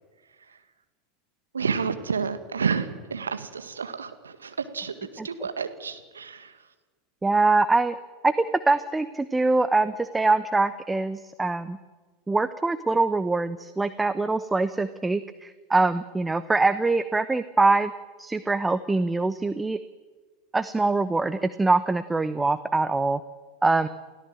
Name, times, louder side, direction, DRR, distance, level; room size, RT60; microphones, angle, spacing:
voice 1, 1.5-4.9 5.2-6.5, right 5 dB, 75° right, 9 dB, 1.9 m, -30 dB
voice 2, 7.2-8.0 8.2-11.8 12.3-17.9 18.2-19.8 20.5-23.2 23.6-23.9, right 3 dB, 10° right, 13 dB, 1.0 m, -23 dB
29.0 x 17.0 x 7.6 m, 1.4 s
figure-of-eight pair, 80°, 0 cm